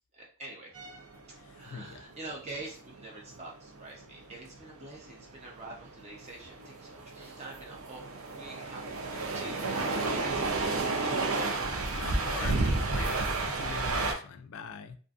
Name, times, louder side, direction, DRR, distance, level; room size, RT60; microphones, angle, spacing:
voice 1, 0.1-0.9 1.5-8.0 8.3-8.8 9.3-12.2, right 2 dB, 30° right, -2 dB, 0.7 m, -46 dB
sound 1, 0.7-14.1, right 3 dB, 70° right, 0.5 m, -32 dB
voice 2, 1.4-2.0 11.9-15.0, left 6 dB, 65° left, 9 dB, 0.3 m, -43 dB
2.5 x 2.5 x 2.4 m, 0.39 s
head